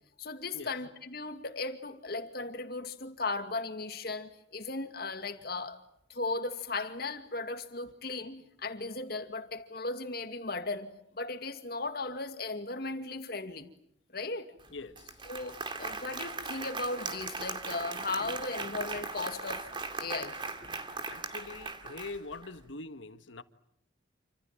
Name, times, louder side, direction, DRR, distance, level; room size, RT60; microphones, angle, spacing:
voice 1, 0.2-5.8 6.1-13.7 14.1-14.5 15.3-19.7 20.0-20.4, left 3 dB, 55° left, 2.3 m, -37 dB
Applause, 14.6-14.7 15.0-22.5, right 3 dB, 25° right, 2.5 m, -39 dB
voice 2, 14.7-15.2 20.9-23.4, left 3 dB, 80° left, 1.6 m, -43 dB
29.0 x 26.5 x 7.6 m
head